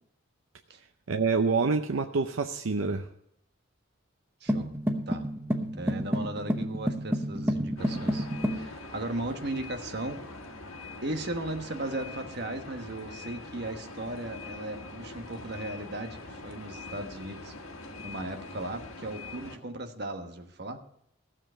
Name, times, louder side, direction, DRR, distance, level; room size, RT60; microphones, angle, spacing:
voice 1, 1.1-3.1, right 4 dB, 75° right, 7 dB, 0.6 m, -27 dB
voice 2, 4.4-4.8 5.1-5.3 5.7-8.3 8.5-10.2 11.0-17.5 18.0-20.8, right 1 dB, 50° right, 6 dB, 1.2 m, -36 dB
sound 1, 4.5-8.7, equal, 10° right, 0.9 m, -30 dB
sound 2, 7.8-19.6, left 2 dB, 90° left, 1.5 m, -43 dB
15.0 x 7.4 x 6.2 m, 0.74 s
head